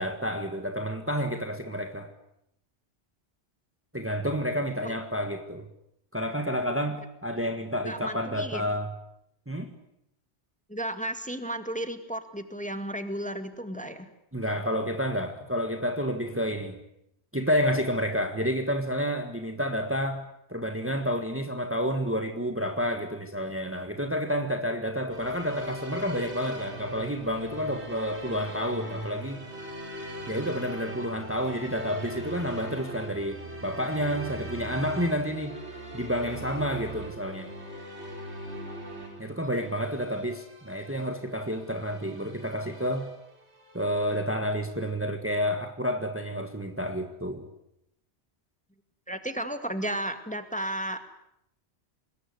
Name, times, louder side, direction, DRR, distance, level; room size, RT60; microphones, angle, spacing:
voice 1, 0.0-2.1 3.9-5.7 6.1-8.9 9.5-9.7 14.3-16.8 17.3-29.5 30.3-35.6 35.9-37.5 39.2-43.1 43.7-47.5, equal, 10° right, 1.7 m, -30 dB
voice 2, 7.8-8.6 10.7-14.1 49.1-51.2, right 1 dB, 5° left, 2.0 m, -34 dB
sound 1, 25.1-44.2, right 1 dB, 70° right, 4.3 m, -41 dB
25.5 x 21.0 x 9.6 m
omnidirectional pair, 1.2 m